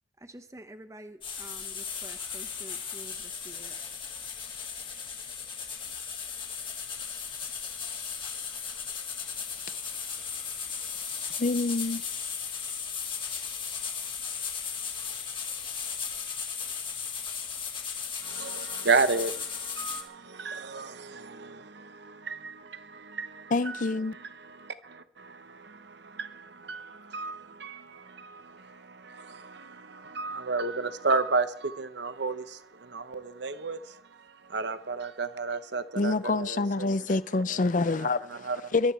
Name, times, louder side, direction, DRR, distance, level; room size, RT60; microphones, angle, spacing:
voice 1, 0.2-3.7, right 1 dB, 15° right, 0.9 m, -48 dB
sound 1, 1.2-20.0, left 6 dB, 25° left, 1.8 m, -36 dB
voice 2, 11.4-12.2 23.5-24.2 35.9-38.9, left 3 dB, 40° left, 0.5 m, -27 dB
voice 3, 18.2-38.7, right 4 dB, 60° right, 0.9 m, -33 dB
21.5 x 12.5 x 4.5 m
head